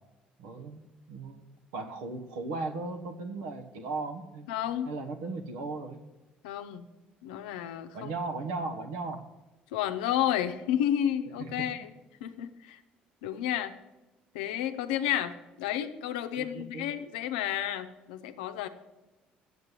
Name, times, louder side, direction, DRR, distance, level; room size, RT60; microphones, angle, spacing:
voice 1, 0.4-0.8 1.1-1.4 1.7-4.5 4.8-6.0 7.9-9.3 11.4-11.7 16.4-16.9, right 3 dB, 80° right, 5 dB, 1.1 m, -36 dB
voice 2, 4.5-4.9 6.4-6.9 7.2-8.1 9.7-11.9 12.2-12.8 13.2-13.7 14.3-18.7, left 11 dB, 85° left, 9 dB, 0.7 m, -31 dB
8.0 x 7.4 x 7.5 m, 1.0 s
hypercardioid pair, 60°, 4 cm